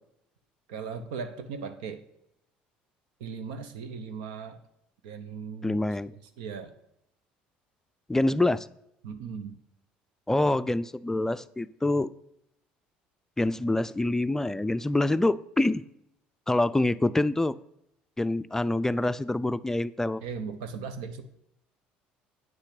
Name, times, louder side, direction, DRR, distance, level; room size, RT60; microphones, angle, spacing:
voice 1, 0.7-2.0 3.2-4.6 5.0-5.8 6.1-6.7 9.0-9.5 20.2-21.3, right 6 dB, 80° right, 9 dB, 0.8 m, -38 dB
voice 2, 5.6-6.1 8.1-8.7 10.3-12.1 13.4-15.8 16.5-17.5 18.2-20.2, left 2 dB, 10° left, 14 dB, 0.4 m, -26 dB
9.2 x 5.8 x 5.9 m, 0.77 s
hypercardioid pair, 70°, 4 cm